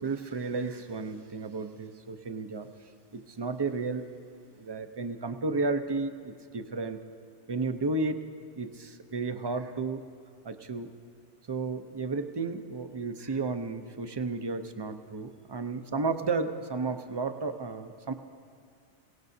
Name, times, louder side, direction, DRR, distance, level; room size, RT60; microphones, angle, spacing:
voice 1, 0.0-2.7 3.1-4.1 4.6-7.0 7.5-8.2 8.6-10.0 10.4-10.9 11.5-18.1, right 3 dB, 30° right, 8 dB, 0.4 m, -33 dB
28.5 x 17.5 x 2.7 m, 2.3 s
omnidirectional pair, 1.2 m